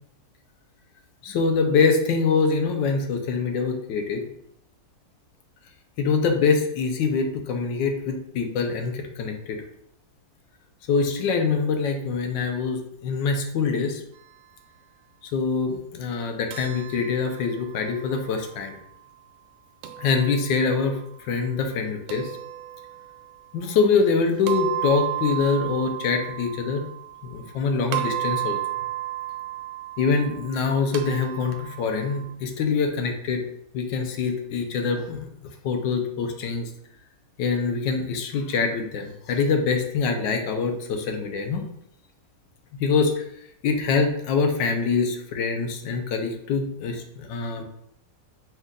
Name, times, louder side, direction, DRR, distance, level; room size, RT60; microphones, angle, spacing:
voice 1, 1.2-4.2 6.0-9.6 10.9-14.0 15.3-18.8 20.0-22.3 23.5-26.8 27.2-28.6 30.0-33.4 33.7-35.3 35.6-36.7 37.4-41.6 42.7-43.2 43.6-47.6, left 5 dB, 80° left, 4 dB, 1.3 m, -24 dB
sound 1, 16.5-18.6 19.8-20.8 22.1-23.3 24.5-27.6 27.9-32.3, right 14 dB, 85° right, 1.3 m, -33 dB
5.3 x 2.3 x 3.7 m, 0.74 s
omnidirectional pair, 2.1 m